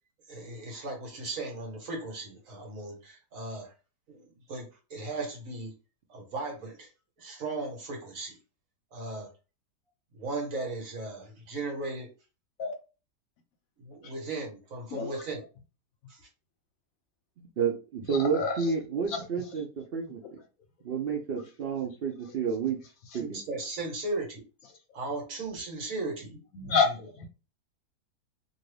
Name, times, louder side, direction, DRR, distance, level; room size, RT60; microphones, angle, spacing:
voice 1, 0.3-3.7 4.1-5.7 6.1-6.9 7.2-8.4 8.9-9.3 10.1-12.1 13.8-15.5 16.1-16.2 23.2-24.4 24.9-27.1, right 2 dB, 55° right, 1.4 m, -37 dB
voice 2, 17.6-20.2 20.8-22.8 23.1-23.4, right 6 dB, 85° right, 0.5 m, -30 dB
voice 3, 26.6-26.9 27.2-27.3, left 5 dB, 65° left, 1.0 m, -26 dB
2.6 x 2.6 x 3.2 m
omnidirectional pair, 1.7 m